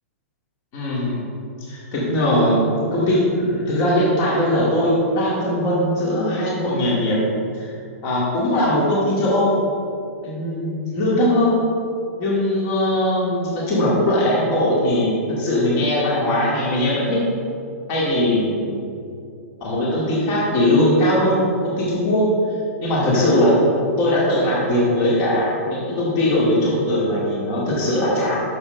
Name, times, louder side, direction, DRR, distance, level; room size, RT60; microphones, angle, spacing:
voice 1, 0.7-1.2 1.6-2.6 2.9-7.2 7.6-7.7 8.0-9.6 10.2-11.6 12.2-17.3 17.9-18.8 19.6-22.3 22.8-23.6 24.0-28.4, left 1 dB, 35° left, -5 dB, 2.2 m, -20 dB
6.9 x 6.7 x 5.5 m, 2.5 s
hypercardioid pair, 155°, 8 cm